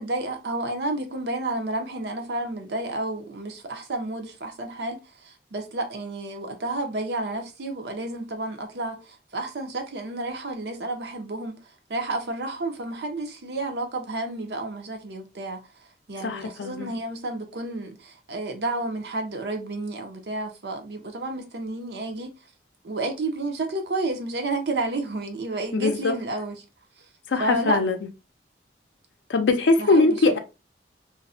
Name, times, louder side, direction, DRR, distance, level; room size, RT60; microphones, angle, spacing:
voice 1, 0.0-5.0 5.2-11.6 11.9-15.6 16.1-22.3 22.8-26.6 27.4-27.8 29.8-30.4, right 2 dB, 70° right, 0.6 m, -31 dB
voice 2, 16.2-16.9 25.7-26.1 27.3-28.0 29.3-30.4, left 3 dB, 85° left, 0.4 m, -21 dB
2.5 x 2.0 x 2.5 m
head